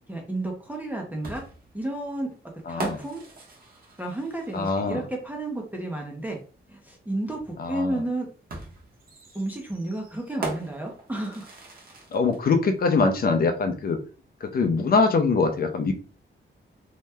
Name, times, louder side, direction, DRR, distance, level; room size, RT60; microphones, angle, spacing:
voice 1, 0.1-1.4 1.7-2.3 2.7-3.2 4.0-6.4 6.7-8.3 9.3-11.5, right 2 dB, 10° right, 0 dB, 0.5 m, -32 dB
sound 1, 1.2-4.9 6.4-6.5 8.5-12.4, right 2 dB, 45° right, 0.9 m, -39 dB
voice 2, 2.7-3.0 4.5-5.0 7.6-8.0 12.1-14.0 14.4-15.9, left 4 dB, 50° left, 6 dB, 0.6 m, -23 dB
2.8 x 2.1 x 3.3 m, 0.37 s
wide cardioid pair, 160°, 20 cm